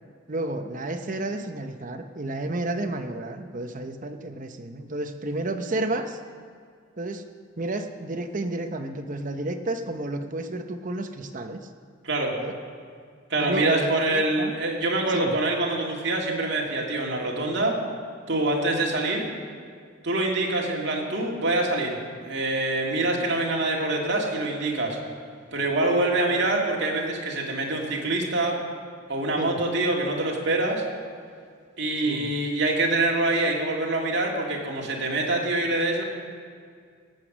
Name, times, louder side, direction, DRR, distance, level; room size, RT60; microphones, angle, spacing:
voice 1, 0.3-6.2 7.0-7.2 7.6-11.6 12.4-12.5 13.4-14.5 15.1-15.3 18.9-19.0 29.4-29.6 32.0-32.3, right 2 dB, 40° right, 7 dB, 0.8 m, -31 dB
voice 2, 13.3-17.8 18.3-19.2 20.0-25.0 25.5-28.6 29.1-30.8 31.8-36.0, right 2 dB, 60° right, -1 dB, 2.4 m, -25 dB
18.0 x 8.1 x 6.2 m, 2.1 s
head